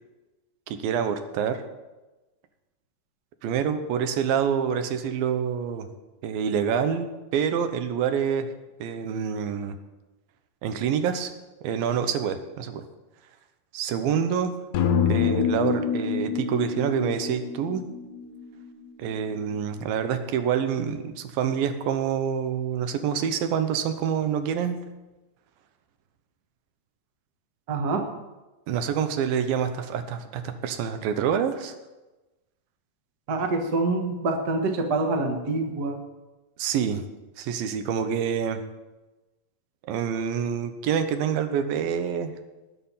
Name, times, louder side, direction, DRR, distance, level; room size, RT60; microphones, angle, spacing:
voice 1, 0.7-1.6 3.4-5.9 6.2-8.5 8.8-9.8 10.6-11.3 11.6-12.8 13.7-14.5 15.1-17.8 19.0-24.8 28.7-31.7 36.6-37.0 37.4-38.6 39.8-42.3, right 7 dB, 90° right, 9 dB, 2.7 m, -27 dB
sound 1, 14.7-18.9, left 7 dB, 70° left, 2.2 m, -26 dB
voice 2, 27.7-28.1 33.3-36.0, right 3 dB, 55° right, 4 dB, 1.1 m, -26 dB
19.5 x 6.6 x 5.6 m, 1.1 s
omnidirectional pair, 4.1 m